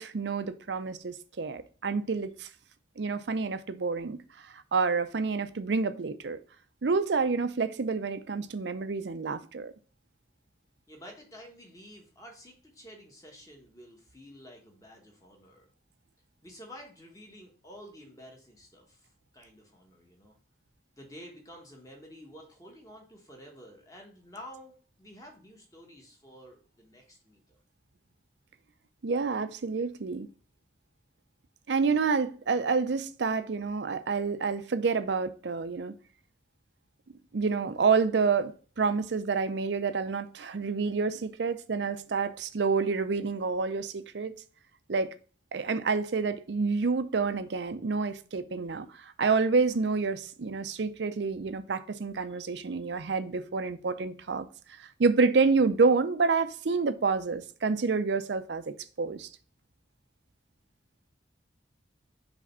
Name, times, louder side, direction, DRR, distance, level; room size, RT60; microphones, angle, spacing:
voice 1, 0.0-2.5 3.0-4.2 4.4-6.4 6.8-9.7 29.0-30.3 31.7-35.9 37.3-44.3 44.9-45.1 45.5-54.5 54.8-59.3, right 4 dB, 70° right, 0.5 m, -28 dB
voice 2, 10.9-15.7 16.4-20.4 21.0-27.4, equal, 20° left, 1.3 m, -50 dB
5.0 x 3.4 x 5.4 m
head